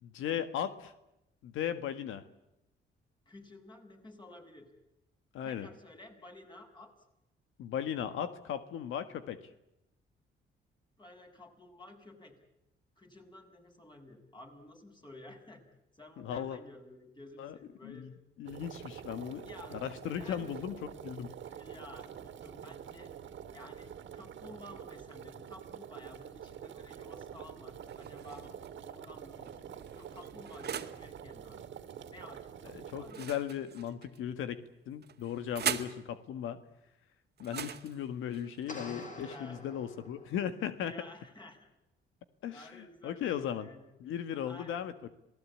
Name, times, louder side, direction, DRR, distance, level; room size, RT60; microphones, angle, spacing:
voice 1, 0.0-0.9 1.4-2.2 5.3-5.7 7.6-9.4 16.2-16.6 17.4-17.5 17.8-19.4 19.7-21.3 32.7-36.6 37.4-40.9 42.4-43.7 44.0-45.1, left 9 dB, 85° left, 11 dB, 1.7 m, -37 dB
voice 2, 3.3-4.7 5.4-6.9 11.0-12.4 13.0-15.6 15.9-18.1 19.4-19.8 20.2-20.5 21.4-23.1 23.5-28.6 28.8-31.7 32.1-33.3 39.2-39.6 40.8-41.7 42.5-43.8 44.4-44.8, left 1 dB, 20° left, 3 dB, 7.1 m, -53 dB
sound 1, 18.5-33.1, right 9 dB, 70° right, 2.4 m, -47 dB
sound 2, 27.9-28.7 29.4-31.0 33.0-34.2 35.0-36.0 37.4-39.3, right 8 dB, 55° right, 2.0 m, -40 dB
sound 3, 38.7-40.6, left 2 dB, 40° left, 6.2 m, -47 dB
27.5 x 19.0 x 8.6 m, 0.88 s
cardioid pair, 90°, 20 cm